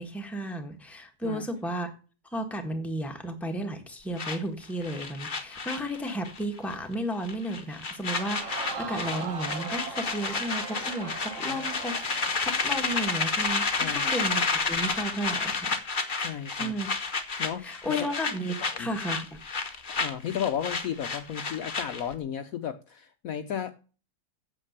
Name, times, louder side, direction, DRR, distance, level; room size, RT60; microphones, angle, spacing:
voice 1, 0.0-1.9 2.3-15.8 16.5-16.9 17.6-19.4, right 1 dB, ahead, 1.3 m, -33 dB
sound 1, 4.2-6.4 6.7-6.9 7.2-22.1, left 4 dB, 35° left, 1.1 m, -31 dB
Crowd, 8.1-13.5 13.9-14.0, right 4 dB, 50° right, 1.4 m, -40 dB
voice 2, 13.8-14.1 16.2-16.7 17.4-18.1 18.6-18.9 19.7-23.7, left 9 dB, 65° left, 1.0 m, -34 dB
8.8 x 7.5 x 6.6 m
omnidirectional pair, 1.8 m